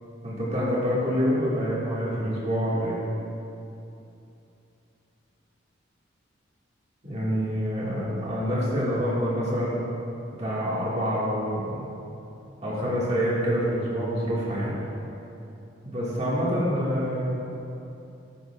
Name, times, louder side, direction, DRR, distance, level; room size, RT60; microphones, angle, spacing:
voice 1, 0.2-3.0 7.0-9.8 10.4-11.9 12.6-14.8 15.8-17.2, equal, 35° right, -8 dB, 1.7 m, -26 dB
10.5 x 7.8 x 2.3 m, 2.8 s
head